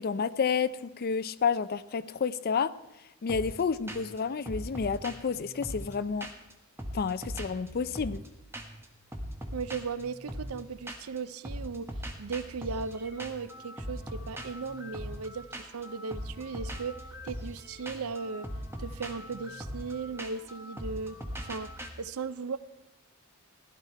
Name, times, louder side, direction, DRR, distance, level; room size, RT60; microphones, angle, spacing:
voice 1, 0.0-2.7 3.2-6.3 6.9-8.2, left 6 dB, 45° left, 15 dB, 0.4 m, -30 dB
sound 1, 3.3-3.6 3.9-4.2 4.5-6.5 6.8-8.3 8.5-8.9 9.1-11.2 11.4-21.9, equal, 10° right, 1.3 m, -40 dB
voice 2, 9.5-11.9 12.2-18.5 18.8-21.2 21.4-21.7 22.0-22.6, right 5 dB, 80° right, 16 dB, 0.5 m, -37 dB
16.0 x 11.5 x 4.6 m, 0.97 s
head